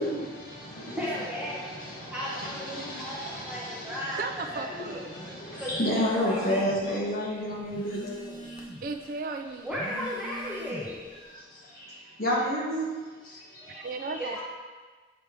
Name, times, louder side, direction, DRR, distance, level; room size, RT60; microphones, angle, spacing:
voice 1, 0.0-1.1 1.5-4.2 4.7-8.6 9.9-10.0 11.3-12.9 13.2-14.1, equal, 55° left, -5 dB, 1.7 m, -32 dB
voice 2, 1.0-5.0 5.6-5.7 6.3-6.6 9.6-11.1 13.5-13.7 14.2-14.4, equal, 5° right, -7 dB, 0.9 m, -36 dB
voice 3, 4.2-5.2 8.8-9.7 13.7-14.4, right 3 dB, 50° right, 6 dB, 0.3 m, -35 dB
Telephone, 5.7-6.9 7.3-9.0 9.6-11.1, equal, 25° left, 0.7 m, -42 dB
8.0 x 3.4 x 4.6 m, 1.4 s
head